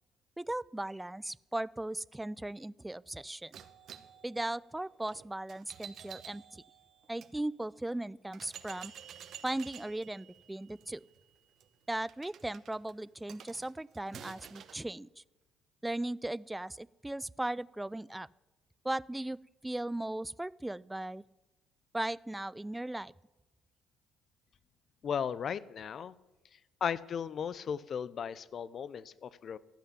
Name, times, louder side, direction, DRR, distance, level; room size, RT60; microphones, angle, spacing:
voice 1, 0.4-3.6 4.2-6.6 7.1-8.9 9.4-11.1 11.9-15.2 15.8-18.3 18.8-19.4 19.6-21.2 21.9-23.1, right 1 dB, 10° right, 21 dB, 0.4 m, -37 dB
sound 1, 3.5-7.3 7.9-8.0 8.3-14.9, right 8 dB, 60° right, 0.9 m, -52 dB
voice 2, 25.0-26.1 26.8-29.6, left 7 dB, 55° left, 19 dB, 0.6 m, -36 dB
14.5 x 5.7 x 10.0 m, 1.1 s
hypercardioid pair, 60°, 0 cm